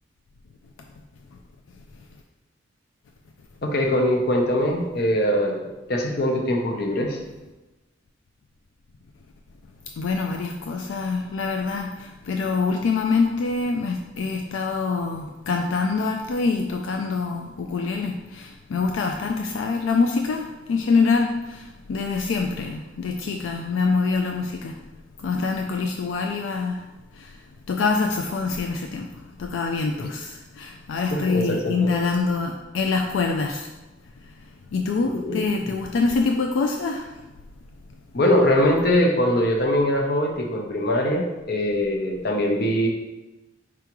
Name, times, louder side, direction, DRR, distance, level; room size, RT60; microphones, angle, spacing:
voice 1, 3.6-7.2 30.0-30.1 31.1-31.9 35.0-35.6 38.1-42.9, left 1 dB, 55° left, 1 dB, 0.7 m, -22 dB
voice 2, 10.0-21.6 21.9-24.7 25.2-26.8 27.2-27.3 27.7-29.1 29.4-33.7 34.7-37.1, left 4 dB, 85° left, 3 dB, 0.3 m, -25 dB
4.8 x 3.5 x 3.0 m, 1.1 s
head